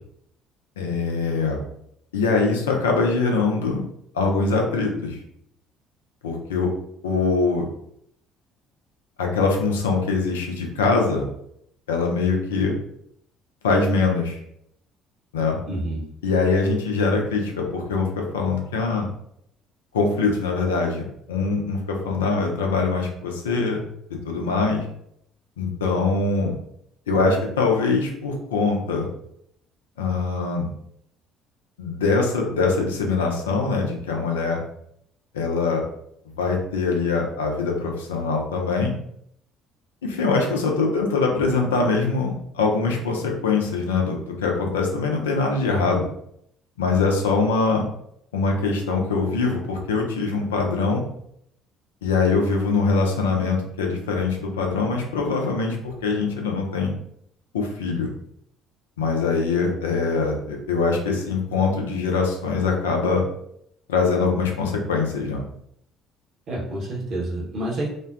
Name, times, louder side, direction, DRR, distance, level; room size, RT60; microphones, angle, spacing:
voice 1, 0.8-1.6 2.1-3.8 4.1-5.2 6.2-6.7 7.0-7.6 9.2-11.3 11.9-12.7 13.6-14.4 15.3-15.6 16.2-19.1 19.9-23.8 24.2-24.9 25.6-26.5 27.1-29.1 30.0-30.7 31.8-34.6 35.3-35.8 36.4-38.9 40.0-46.1 46.8-47.8 48.3-51.0 52.0-56.9 57.5-58.1 59.0-63.2 63.9-65.4, left 4 dB, 75° left, 1 dB, 0.4 m, -23 dB
voice 2, 15.7-16.1 66.5-67.9, right 1 dB, 45° right, -4 dB, 0.9 m, -28 dB
2.5 x 2.1 x 2.3 m, 0.72 s
figure-of-eight pair, 55°, 0 cm